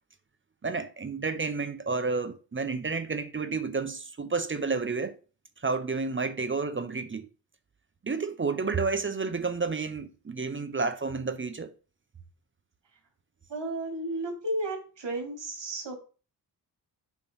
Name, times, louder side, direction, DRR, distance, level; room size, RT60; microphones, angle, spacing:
voice 1, 0.6-5.1 5.6-7.3 8.0-11.7, right 4 dB, 30° right, 0.5 m, -30 dB
voice 2, 13.5-15.9, right 1 dB, 80° right, 2.8 m, -33 dB
8.2 x 3.0 x 5.4 m
wide cardioid pair, 150°, 43 cm